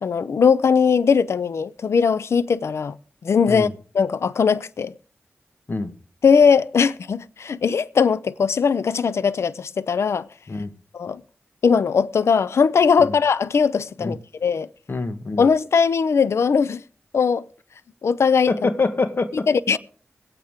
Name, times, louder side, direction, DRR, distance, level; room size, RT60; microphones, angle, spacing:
voice 1, 0.0-3.0 3.2-3.7 3.9-4.9 6.2-10.3 10.9-11.2 11.6-14.7 15.4-16.8 17.1-17.5 18.0-18.5 19.5-19.8, left 6 dB, 75° left, 0.5 m, -19 dB
voice 2, 14.9-15.5 18.5-19.5 19.7-19.8, left 3 dB, 55° left, 1.3 m, -25 dB
21.5 x 8.8 x 3.6 m
cardioid pair, 45°, 5 cm